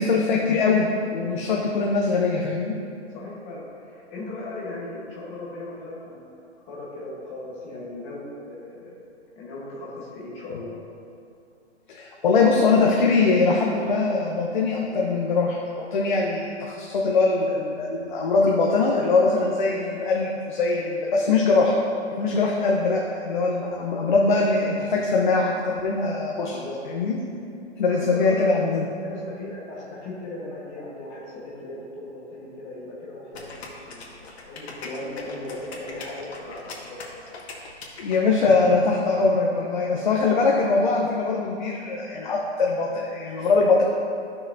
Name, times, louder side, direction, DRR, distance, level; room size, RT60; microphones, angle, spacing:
voice 1, 0.0-2.7 11.9-15.6 15.9-21.7 22.2-26.6 26.9-27.2 27.8-28.8 38.0-43.8, left 3 dB, 45° left, -2 dB, 0.8 m, -22 dB
voice 2, 3.0-6.3 6.6-9.0 9.3-10.8 26.5-26.8 27.9-28.5 29.0-37.3 39.5-40.1, left 2 dB, 15° left, -6 dB, 1.2 m, -38 dB
sound 1, 33.3-38.7, left 3 dB, 65° left, 1.6 m, -40 dB
13.0 x 5.9 x 2.6 m, 2.5 s
hypercardioid pair, 170°, 34 cm